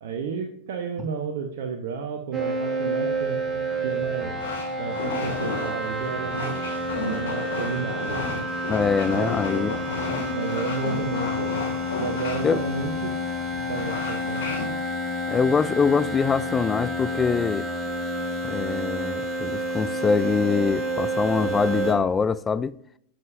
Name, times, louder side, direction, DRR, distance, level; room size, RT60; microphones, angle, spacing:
voice 1, 0.0-4.4 4.8-6.6 7.0-8.4 9.1-9.3 10.3-11.5 11.9-13.2 13.7-14.4, right 5 dB, 55° right, 0.9 m, -32 dB
sound 1, 2.3-21.9, right 1 dB, 20° right, 1.6 m, -29 dB
sound 2, 3.1-14.7, left 4 dB, 60° left, 2.1 m, -34 dB
voice 2, 8.7-9.8 12.4-12.6 15.3-17.7 18.4-22.8, left 5 dB, 15° left, 0.3 m, -24 dB
11.0 x 7.3 x 2.6 m
figure-of-eight pair, 90°, 0 cm